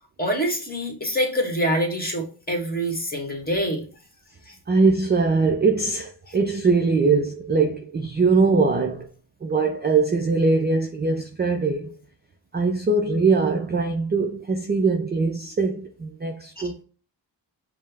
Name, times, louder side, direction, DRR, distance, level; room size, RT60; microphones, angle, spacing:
voice 1, 0.2-3.8 4.5-4.6 6.3-6.4 16.6-16.7, equal, 20° left, 1.2 m, -26 dB
voice 2, 4.7-9.1 9.4-11.9 12.5-16.8, right 4 dB, 25° right, 0.4 m, -22 dB
5.3 x 2.0 x 3.3 m
cardioid pair, 80°, 45 cm